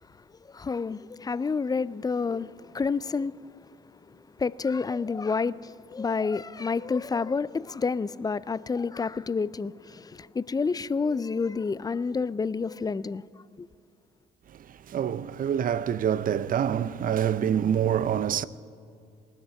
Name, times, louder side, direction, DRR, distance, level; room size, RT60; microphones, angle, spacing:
voice 1, 0.5-3.4 4.4-13.2 13.6-13.7, left 4 dB, 20° left, 0.4 m, -29 dB
voice 2, 14.7-18.4, right 9 dB, 45° right, 0.5 m, -26 dB
19.0 x 6.6 x 9.5 m
hypercardioid pair, 55°, 20 cm